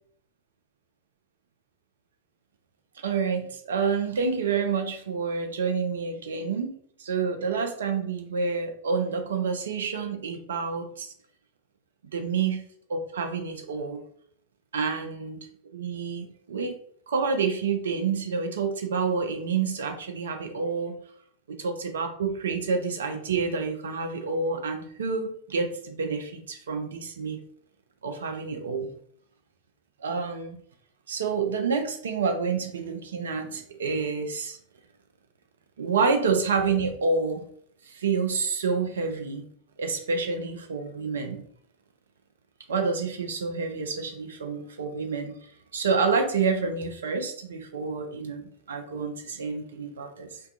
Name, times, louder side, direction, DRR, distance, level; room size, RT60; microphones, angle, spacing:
voice 1, 3.0-6.7 7.0-11.1 12.1-12.6 12.9-14.0 14.7-15.4 15.7-16.8 17.1-20.9 21.5-27.4 28.0-28.9 30.0-30.6 31.1-34.6 35.8-37.4 37.9-39.5 39.8-41.4 42.7-45.3 45.7-50.4, right 5 dB, 65° right, 5 dB, 0.4 m, -28 dB
2.2 x 2.2 x 2.6 m, 0.64 s
figure-of-eight pair, 90°, 0 cm